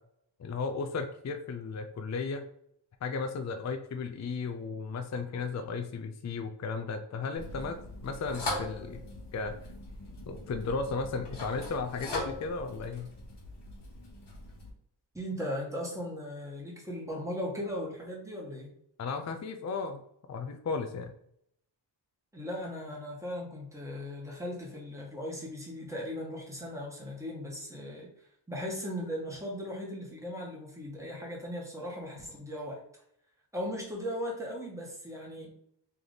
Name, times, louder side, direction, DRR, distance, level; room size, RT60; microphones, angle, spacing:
voice 1, 0.4-2.5 3.0-7.8 8.0-9.0 9.3-9.6 10.3-13.1 19.0-20.0 20.3-21.1, left 4 dB, 40° left, 7 dB, 0.5 m, -35 dB
sound 1, 7.4-14.7, left 1 dB, 65° left, 1.4 m, -40 dB
voice 2, 15.1-18.7 22.3-32.8 33.5-35.6, equal, 5° right, -3 dB, 1.3 m, -38 dB
3.4 x 3.0 x 3.9 m, 0.70 s
wide cardioid pair, 95°, 46 cm